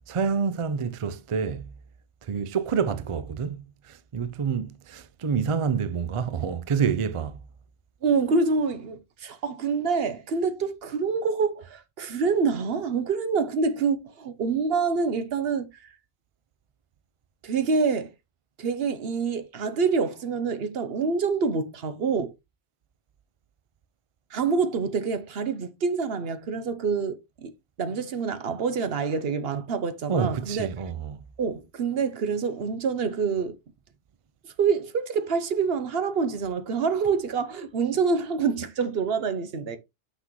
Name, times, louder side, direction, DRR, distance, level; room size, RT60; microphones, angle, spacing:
voice 1, 0.1-1.7 2.2-3.6 3.8-7.4 30.1-31.2, right 6 dB, 45° right, 0.4 m, -27 dB
voice 2, 8.0-15.9 17.4-18.1 18.6-22.3 24.3-27.5 27.8-30.7 31.4-33.6 34.6-39.8, right 5 dB, 65° right, 1.0 m, -26 dB
5.9 x 5.8 x 3.0 m
omnidirectional pair, 1.1 m